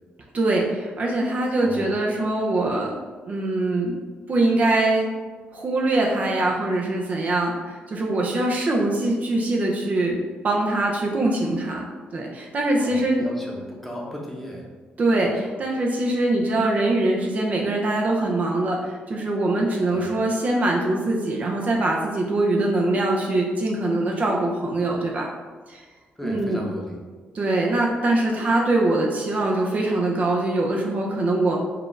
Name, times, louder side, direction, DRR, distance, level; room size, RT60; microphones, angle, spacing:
voice 1, 0.3-2.9 3.3-4.0 4.3-5.1 5.5-10.2 10.4-13.2 15.0-25.3 25.7-25.8 26.2-26.6 27.3-31.6, right 2 dB, 45° right, -1 dB, 0.6 m, -23 dB
voice 2, 1.6-1.9 12.8-14.7 15.1-15.3 19.9-20.0 26.2-27.0, equal, 5° left, -2 dB, 0.8 m, -36 dB
4.7 x 2.4 x 3.2 m, 1.4 s
cardioid pair, 95°, 4 cm